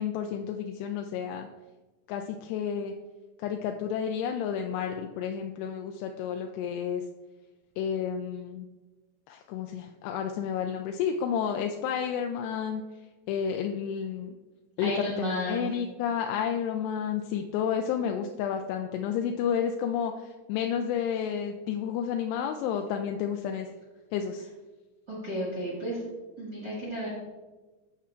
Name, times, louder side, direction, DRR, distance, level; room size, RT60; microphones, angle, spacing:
voice 1, 0.0-1.5 2.1-2.9 3.4-7.0 7.8-8.7 9.3-12.8 13.3-14.3 14.8-23.7 24.1-24.5, left 8 dB, 85° left, 4 dB, 2.5 m, -31 dB
voice 2, 14.8-15.7 25.1-26.0 26.4-27.1, equal, 80° right, -6 dB, 0.9 m, -33 dB
14.0 x 5.6 x 2.4 m, 1.2 s
omnidirectional pair, 5.2 m